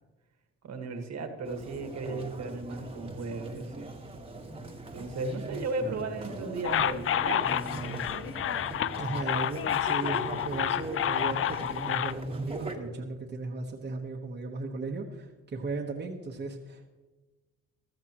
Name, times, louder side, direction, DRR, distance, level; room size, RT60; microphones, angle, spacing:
voice 1, 0.6-3.9 4.9-8.3, right 3 dB, 60° right, 5 dB, 1.7 m, -36 dB
sound 1, 1.4-12.8, right 2 dB, 20° right, 1.5 m, -41 dB
voice 2, 5.3-6.3 9.0-16.9, right 3 dB, 35° right, -1 dB, 1.2 m, -36 dB
sound 2, 6.6-12.1, left 11 dB, 45° left, 0.4 m, -29 dB
15.0 x 12.5 x 3.0 m, 1.2 s
cardioid pair, 90°, 30 cm